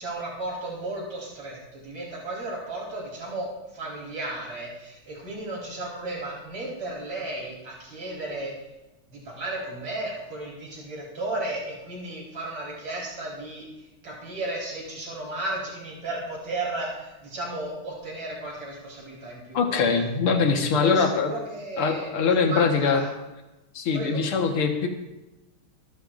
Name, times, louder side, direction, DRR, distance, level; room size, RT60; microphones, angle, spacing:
voice 1, 0.0-3.5 3.7-8.5 9.1-19.7 20.4-23.1 23.9-24.2, right 2 dB, 70° right, -5 dB, 5.3 m, -34 dB
voice 2, 19.5-21.3 21.8-23.0 23.7-24.9, left 5 dB, 80° left, 4 dB, 2.3 m, -22 dB
25.0 x 12.5 x 2.5 m, 1.0 s
omnidirectional pair, 2.3 m